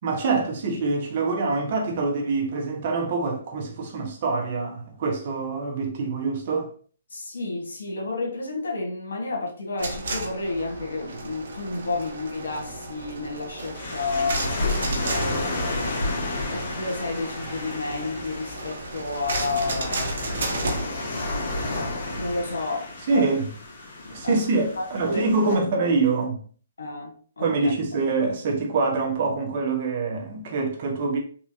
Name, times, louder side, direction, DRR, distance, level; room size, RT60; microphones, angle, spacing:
voice 1, 0.0-6.7 23.1-23.5 24.1-26.4 27.4-31.2, right 3 dB, 50° right, 1.1 m, -25 dB
voice 2, 7.1-20.2 20.5-21.6 22.2-23.4 24.0-24.4 24.8-25.5 26.8-27.7, left 3 dB, 80° left, 1.4 m, -31 dB
sound 1, 9.8-20.9, right 2 dB, 70° right, 1.0 m, -34 dB
Kua Bay Beach Waves, 13.7-25.6, left 2 dB, 50° left, 1.4 m, -31 dB
3.7 x 3.0 x 2.7 m
hypercardioid pair, 140°, 0 cm